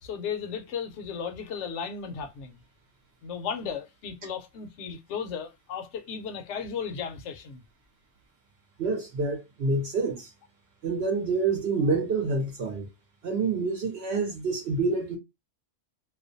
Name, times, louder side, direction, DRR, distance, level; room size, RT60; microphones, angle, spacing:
voice 1, 0.0-2.6 3.2-7.6, left 6 dB, 70° left, 0.9 m, -35 dB
voice 2, 8.8-10.3 10.8-12.9 13.2-15.2, right 3 dB, 60° right, 0.8 m, -27 dB
2.4 x 2.1 x 2.5 m
omnidirectional pair, 1.3 m